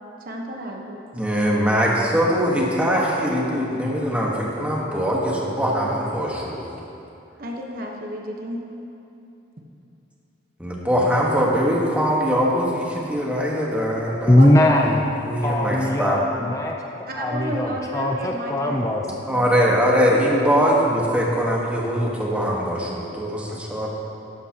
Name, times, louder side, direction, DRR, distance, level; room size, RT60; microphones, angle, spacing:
voice 1, 0.2-1.0 7.4-8.6 14.3-14.5 17.1-19.7, right 1 dB, 55° right, 0 dB, 1.1 m, -32 dB
voice 2, 1.1-6.7 10.6-14.4 15.3-16.2 19.3-23.9, equal, 10° right, -3 dB, 1.4 m, -22 dB
voice 3, 14.3-15.1 15.4-16.8 17.2-19.1, left 1 dB, 15° left, 1 dB, 0.5 m, -20 dB
12.5 x 10.5 x 2.9 m, 2.8 s
head